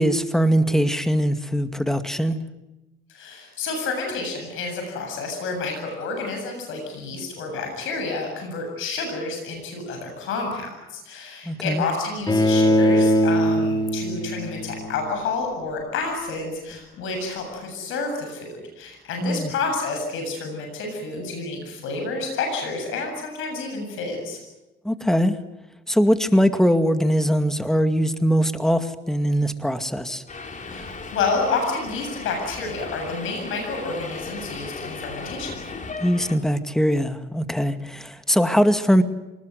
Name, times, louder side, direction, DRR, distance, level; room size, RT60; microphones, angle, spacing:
voice 1, 0.0-2.4 11.5-11.8 19.2-19.5 24.8-25.4 25.9-30.2 36.0-39.0, equal, ahead, 8 dB, 2.2 m, -21 dB
voice 2, 3.1-24.4 30.5-35.7, left 3 dB, 85° left, 3 dB, 7.6 m, -29 dB
Bowed string instrument, 12.3-15.3, equal, 20° left, 2.4 m, -21 dB
Subway metro underground, 30.3-36.4, left 4 dB, 40° left, 3.9 m, -36 dB
26.0 x 20.0 x 9.5 m, 1.0 s
cardioid pair, 90°, 20 cm